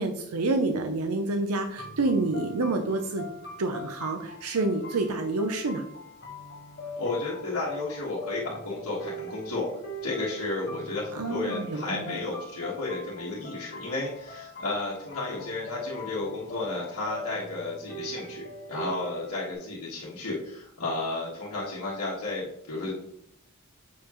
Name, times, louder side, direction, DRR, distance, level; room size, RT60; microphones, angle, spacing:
voice 1, 0.0-3.2 3.6-5.8 11.1-12.2, right 2 dB, 85° right, 6 dB, 0.6 m, -28 dB
sound 1, 1.8-19.5, left 1 dB, 45° left, 1.3 m, -42 dB
voice 2, 7.0-9.7 10.0-22.9, left 2 dB, 90° left, -8 dB, 1.6 m, -33 dB
7.0 x 4.7 x 3.0 m, 0.74 s
head